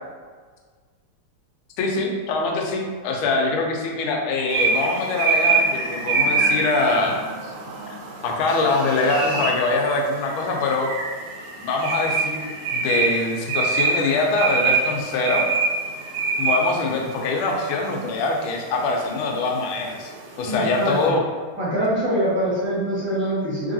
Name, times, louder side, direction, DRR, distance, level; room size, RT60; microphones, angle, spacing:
voice 1, 1.8-7.5 8.2-10.9 11.6-15.4 16.4-20.1 20.4-21.2, left 3 dB, 75° left, 0 dB, 1.4 m, -23 dB
sound 1, 4.5-21.0, right 4 dB, 90° right, 1.7 m, -25 dB
voice 2, 20.4-21.0 21.6-23.7, right 1 dB, 10° right, -11 dB, 0.8 m, -24 dB
3.8 x 3.3 x 2.6 m, 1.5 s
omnidirectional pair, 2.4 m